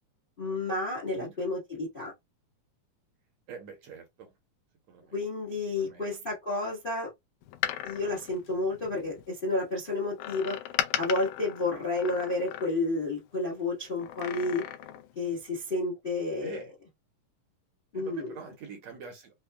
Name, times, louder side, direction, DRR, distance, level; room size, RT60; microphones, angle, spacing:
voice 1, 0.4-2.1 5.1-7.1 7.8-10.6 11.0-14.6 15.1-16.6 17.9-18.3, left 2 dB, 70° left, 0.5 m, -31 dB
voice 2, 3.5-4.3 4.9-5.1 5.8-6.1 16.4-16.7 17.9-19.3, right 5 dB, 70° right, 1.7 m, -45 dB
Door, 7.4-9.2 10.2-13.1 14.0-15.1 15.4-15.5, left 12 dB, 85° left, 2.1 m, -36 dB
5.4 x 2.1 x 2.2 m
omnidirectional pair, 3.6 m